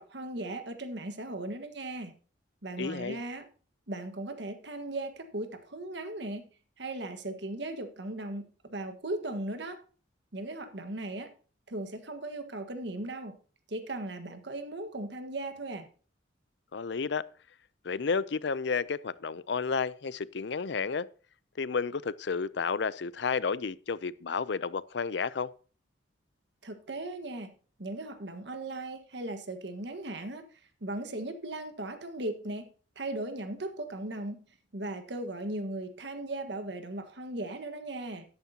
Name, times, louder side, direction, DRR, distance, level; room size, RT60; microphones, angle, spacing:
voice 1, 0.0-2.1 2.6-3.5 3.9-6.5 6.8-9.8 10.3-11.3 11.7-13.4 13.7-15.9 26.6-27.5 27.8-32.7 33.0-34.4 34.7-38.2, right 2 dB, 65° right, 1.5 m, -37 dB
voice 2, 2.8-3.2 16.7-17.2 17.8-21.1 21.6-25.5, left 5 dB, 65° left, 0.5 m, -31 dB
13.0 x 11.0 x 2.9 m
head